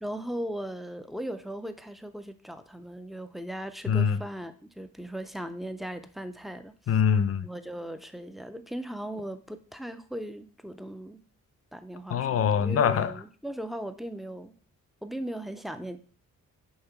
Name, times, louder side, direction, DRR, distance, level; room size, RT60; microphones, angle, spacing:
voice 1, 0.0-6.7 7.4-11.2 11.7-14.5 15.0-16.0, right 1 dB, ahead, 10 dB, 0.4 m, -38 dB
voice 2, 3.9-4.2 6.9-7.5 12.1-13.1, left 7 dB, 50° left, 12 dB, 0.6 m, -24 dB
5.7 x 3.7 x 5.7 m, 0.41 s
wide cardioid pair, 150°, 31 cm